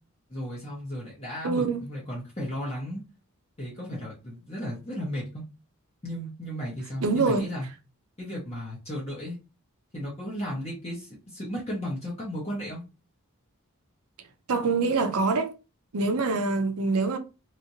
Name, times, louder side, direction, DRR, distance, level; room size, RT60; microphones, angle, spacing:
voice 1, 0.3-3.0 3.6-5.4 6.0-7.7 8.2-9.4 9.9-12.8, equal, 30° left, 1.0 m, -35 dB
voice 2, 1.4-1.8 7.0-7.5 14.5-15.5 15.9-17.2, right 3 dB, 85° right, 0.6 m, -25 dB
3.2 x 2.9 x 2.7 m
head